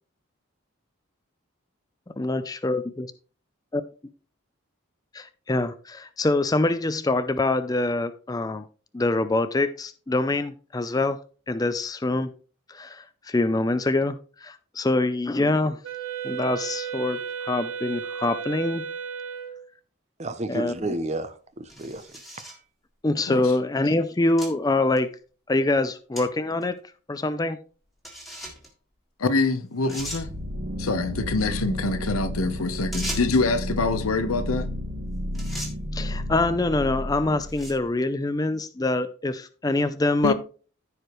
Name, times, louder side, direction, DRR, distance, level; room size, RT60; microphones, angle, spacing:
voice 1, 2.2-3.1 5.1-8.6 8.9-11.2 11.5-12.3 12.7-15.8 16.2-18.8 20.5-20.7 23.0-25.1 25.5-26.7 27.1-27.6 35.9-40.3, left 2 dB, 15° left, 0.4 m, -25 dB
Wind instrument woodwind instrument, 15.8-19.7, right 7 dB, 65° right, 1.1 m, -34 dB
voice 2, 20.2-22.2, right 1 dB, 30° right, 0.7 m, -31 dB
sound 1, 21.7-22.6 23.4-23.5 24.4-24.5 25.0-25.1 26.2-26.3 26.6-26.7 28.0-28.7 29.4-29.5 29.9-30.3 32.9-33.5 34.8-35.0 35.3-35.8 36.6-36.8 37.4-37.9, equal, ahead, 1.9 m, -37 dB
voice 3, 29.2-30.3 30.8-34.7 40.2-40.3, left 3 dB, 90° left, 0.9 m, -25 dB
sound 2, 30.0-37.8, left 1 dB, 85° right, 2.0 m, -32 dB
14.5 x 4.9 x 3.1 m
head